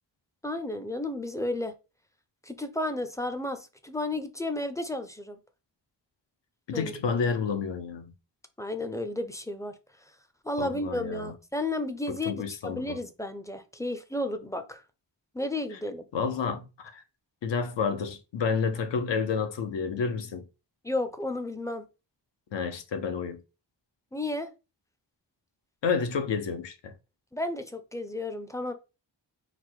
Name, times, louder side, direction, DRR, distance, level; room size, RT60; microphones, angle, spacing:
voice 1, 0.4-1.7 2.4-5.4 6.7-6.9 8.6-9.7 10.4-14.8 15.3-16.1 20.8-21.8 24.1-24.5 27.3-28.7, left 1 dB, 10° left, 0.4 m, -32 dB
voice 2, 6.7-8.1 10.6-11.3 12.1-13.0 15.7-15.8 16.1-17.0 17.4-20.5 22.5-23.4 25.8-26.9, left 5 dB, 85° left, 0.7 m, -30 dB
4.1 x 2.1 x 4.4 m
wide cardioid pair, 120°, 43 cm